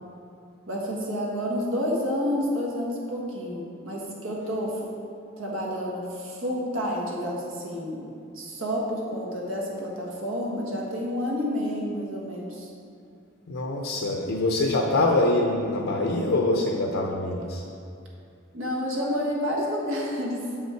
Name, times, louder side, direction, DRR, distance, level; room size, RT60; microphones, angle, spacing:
voice 1, 0.7-4.9 5.4-8.0 8.3-12.7 18.5-20.7, equal, 80° right, -3 dB, 1.5 m, -29 dB
voice 2, 13.5-17.6, left 2 dB, 75° left, 0 dB, 0.7 m, -24 dB
6.9 x 5.7 x 4.5 m, 2.5 s
head